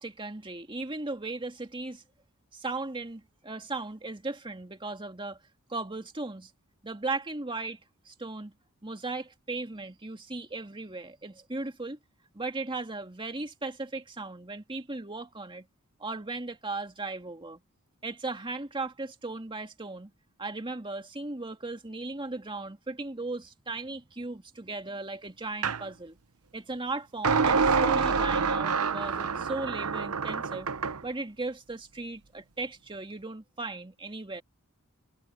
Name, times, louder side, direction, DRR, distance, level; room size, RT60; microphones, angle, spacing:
voice 1, 0.0-2.0 2.5-5.4 5.7-6.5 6.8-7.8 8.1-8.5 8.8-12.0 12.3-15.7 16.0-17.6 18.0-20.1 20.4-26.2 26.5-30.7 31.0-34.4, right 3 dB, 20° right, 2.1 m, -37 dB
sound 1, 25.6-25.8 27.2-31.0, right 5 dB, 75° right, 0.9 m, -26 dB
head